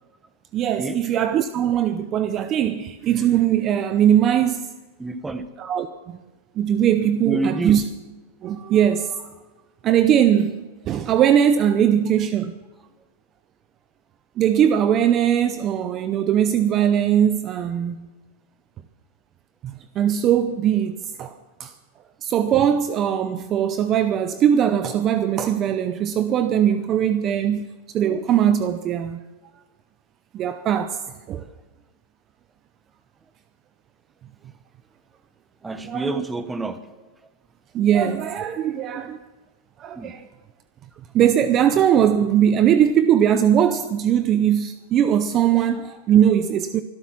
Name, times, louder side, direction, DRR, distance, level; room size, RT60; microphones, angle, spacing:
voice 1, 0.5-4.7 5.6-6.2 6.6-7.8 8.4-9.3 9.8-12.5 14.4-18.1 19.6-21.3 21.6-21.7 22.2-27.7 27.9-29.2 30.3-31.0 31.3-31.4 35.8-36.2 37.7-39.2 39.8-40.2 41.1-46.8, right 9 dB, 25° right, 0.6 m, -20 dB
voice 2, 5.0-5.4 7.2-7.8 35.6-37.0 39.9-40.1, right 2 dB, 10° right, 1.0 m, -28 dB
24.5 x 8.3 x 6.0 m
supercardioid pair, 155°, 0 cm